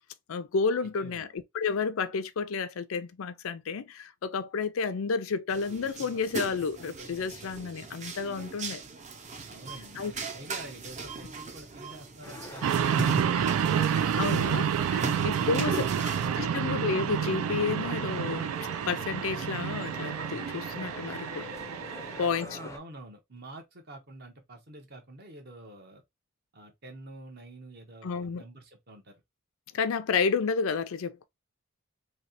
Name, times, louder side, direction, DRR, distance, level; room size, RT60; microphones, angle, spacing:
voice 1, 0.3-8.8 10.0-10.1 14.2-14.7 15.2-18.5 18.9-21.5 22.2-22.5 28.0-28.4 29.7-31.3, left 5 dB, 75° left, 0.4 m, -31 dB
voice 2, 1.0-1.3 9.5-14.4 15.0-17.0 22.4-26.0 26.5-29.1, right 2 dB, 50° right, 1.0 m, -47 dB
sound 1, 5.5-16.3, right 3 dB, 35° right, 0.6 m, -38 dB
sound 2, 12.2-22.8, left 2 dB, 15° left, 0.4 m, -44 dB
sound 3, 12.6-22.3, right 8 dB, 85° right, 0.3 m, -29 dB
3.1 x 2.8 x 2.6 m
head